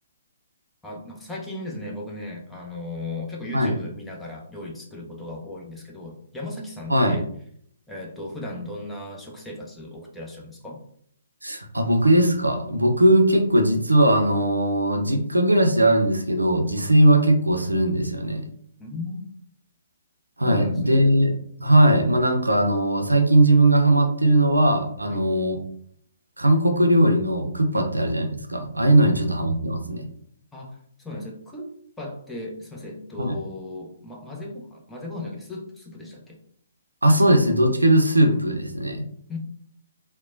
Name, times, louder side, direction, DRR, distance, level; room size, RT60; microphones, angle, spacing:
voice 1, 0.8-7.3 7.9-10.8 18.8-19.3 20.4-21.1 25.1-25.3 27.7-27.9 29.0-29.3 30.5-31.7 32.0-36.4 39.3-39.4, left 2 dB, 5° left, -2 dB, 0.5 m, -36 dB
voice 2, 11.4-18.4 20.4-21.3 21.6-25.6 26.4-30.1 33.2-33.4 37.0-39.1, right 1 dB, 85° right, 4 dB, 0.5 m, -19 dB
2.8 x 2.1 x 2.6 m, 0.64 s
figure-of-eight pair, 130°, 0 cm